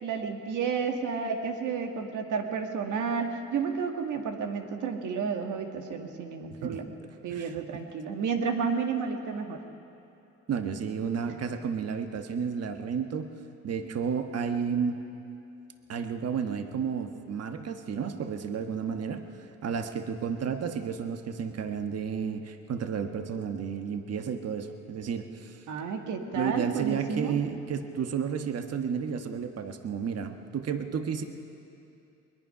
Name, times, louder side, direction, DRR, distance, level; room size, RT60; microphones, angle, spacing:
voice 1, 0.0-6.9 7.2-9.6 11.2-11.4 25.7-27.4, right 5 dB, 80° right, 4 dB, 1.8 m, -31 dB
voice 2, 7.3-7.8 10.5-13.3 13.6-15.0 15.9-19.2 19.6-25.6 26.3-31.2, right 6 dB, 55° right, 7 dB, 1.4 m, -32 dB
21.5 x 21.0 x 5.8 m, 2.7 s
cardioid pair, 90°, 30 cm